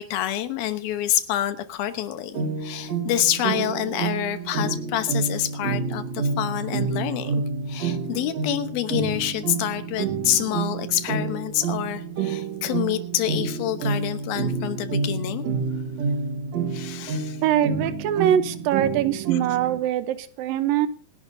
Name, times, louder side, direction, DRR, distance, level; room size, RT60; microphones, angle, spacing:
voice 1, 0.0-7.4 7.7-15.4 16.7-17.4, left 12 dB, 85° left, 10 dB, 2.9 m, -27 dB
sound 1, 2.3-19.8, right 4 dB, 55° right, 2.5 m, -29 dB
voice 2, 17.4-20.9, right 11 dB, 80° right, 12 dB, 2.6 m, -23 dB
26.0 x 11.0 x 2.7 m, 0.40 s
omnidirectional pair, 4.1 m